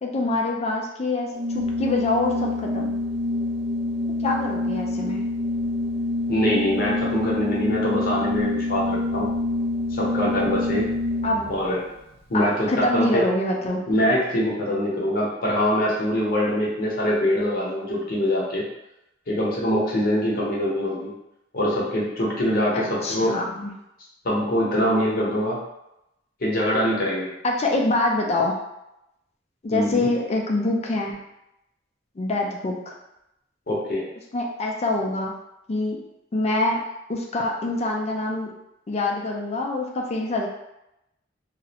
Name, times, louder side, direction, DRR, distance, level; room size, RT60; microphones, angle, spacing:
voice 1, 0.0-2.9 4.2-5.2 11.2-11.5 12.3-13.8 22.7-23.7 27.4-28.6 29.6-31.2 32.2-33.0 34.3-35.4 35.7-36.0 36.3-36.8 37.1-38.5 38.9-40.5, left 2 dB, 35° left, 0 dB, 0.4 m, -25 dB
Organ, 1.3-11.6, left 2 dB, 30° right, 0.4 m, -26 dB
voice 2, 6.3-9.3 9.9-10.9 11.5-11.8 12.3-13.2 13.9-18.6 19.3-21.1 21.5-23.3 24.2-25.6 26.4-27.3 29.7-30.1 33.7-34.0, equal, 50° left, -5 dB, 0.8 m, -23 dB
2.4 x 2.0 x 2.8 m, 0.87 s
head